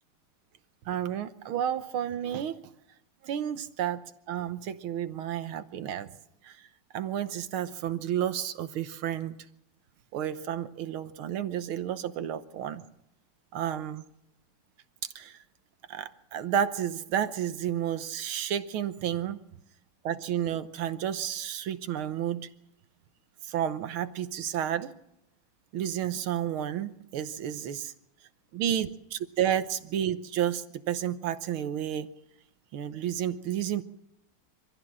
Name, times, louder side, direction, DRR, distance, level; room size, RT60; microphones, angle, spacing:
voice 1, 0.9-2.6 3.2-6.1 6.4-6.5 6.9-9.3 10.1-12.8 13.5-14.0 15.1-15.4 15.9-19.4 20.0-22.5 23.4-24.9 25.7-27.9 28.5-32.1 32.7-33.8, right 10 dB, 75° right, 11 dB, 1.8 m, -31 dB
25.0 x 15.0 x 7.5 m, 0.81 s
omnidirectional pair, 2.4 m